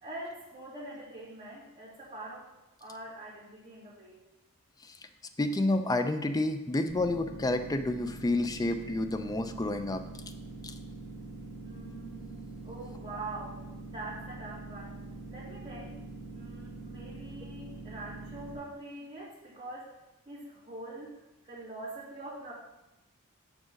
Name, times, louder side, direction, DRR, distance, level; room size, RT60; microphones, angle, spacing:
voice 1, 0.0-2.5 2.8-4.2 11.6-13.6 13.9-15.0 15.3-16.0 16.3-19.9 20.3-22.5, right 2 dB, 25° right, -8 dB, 2.6 m, -44 dB
voice 2, 5.4-10.0 10.6-10.7, left 2 dB, 15° left, 8 dB, 0.4 m, -29 dB
sound 1, 6.9-18.5, right 3 dB, 65° right, 1.6 m, -44 dB
6.2 x 5.0 x 5.2 m, 0.98 s
head